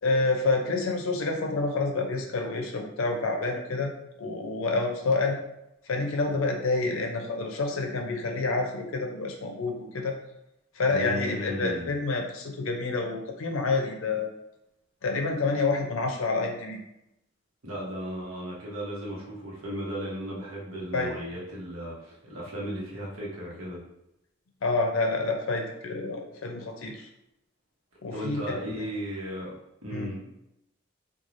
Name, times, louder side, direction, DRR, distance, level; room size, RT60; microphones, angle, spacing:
voice 1, 0.0-3.9 4.2-5.4 5.9-10.2 10.7-14.3 15.0-16.8 20.9-21.1 24.6-27.1 28.0-28.9 29.9-30.1, left 3 dB, 75° left, 3 dB, 0.5 m, -28 dB
voice 2, 10.9-12.0 17.6-23.8 28.1-29.5 29.8-30.2, equal, 80° right, -4 dB, 0.9 m, -35 dB
3.1 x 2.3 x 2.5 m, 0.84 s
head